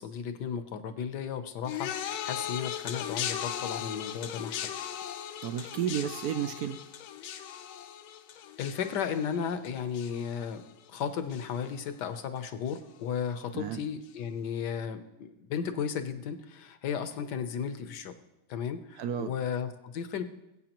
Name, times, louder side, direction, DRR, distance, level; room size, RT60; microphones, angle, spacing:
voice 1, 0.0-4.7 8.6-10.6 10.9-18.1 18.5-20.2, left 7 dB, 65° left, 9 dB, 1.2 m, -34 dB
sound 1, 1.6-11.0 11.3-11.8 12.7-12.8, left 10 dB, 85° left, 1.5 m, -38 dB
voice 2, 5.4-6.8 13.5-13.8 19.0-19.3, right 9 dB, 75° right, 9 dB, 0.9 m, -32 dB
20.5 x 8.3 x 3.0 m, 0.92 s
omnidirectional pair, 2.2 m